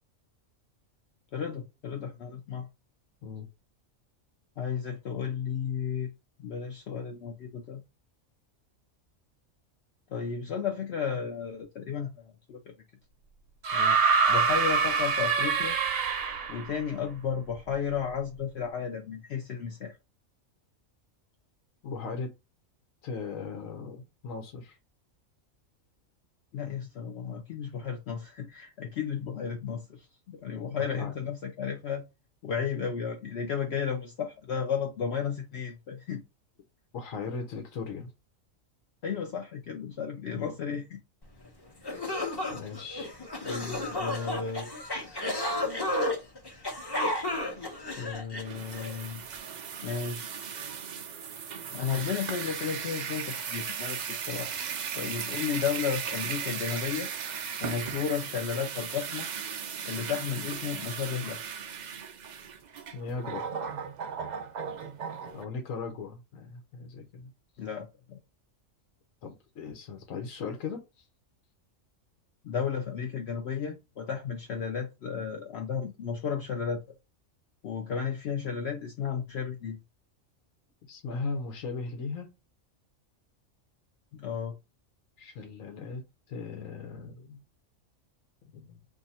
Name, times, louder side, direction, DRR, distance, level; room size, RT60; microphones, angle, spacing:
voice 1, 1.3-2.7 4.6-6.1 6.4-7.8 10.1-12.7 14.3-15.8 16.5-20.0 26.5-32.0 32.4-36.2 39.0-41.0 41.8-42.0 43.4-44.7 48.0-49.2 49.8-50.3 51.7-54.0 54.3-54.5 55.0-57.1 57.6-59.3 59.8-61.4 67.6-68.2 72.4-76.8 77.6-79.8 84.1-84.6, left 7 dB, 60° left, 0.8 m, -33 dB
sound 1, 13.6-16.7 17.9-18.0, right 5 dB, 55° right, 0.8 m, -25 dB
voice 2, 21.8-22.3 23.0-24.8 30.7-31.1 36.9-38.1 40.3-40.5 42.5-43.1 62.9-63.4 65.3-67.3 69.2-71.0 80.9-82.3 85.2-86.0 86.3-87.4 88.5-88.8, left 4 dB, 90° left, 1.2 m, -38 dB
sound 2, 41.5-41.6 41.8-48.9, left 1 dB, 25° left, 0.7 m, -32 dB
sound 3, 48.4-65.5, right 7 dB, 70° right, 0.4 m, -37 dB
2.7 x 2.5 x 4.1 m
omnidirectional pair, 1.3 m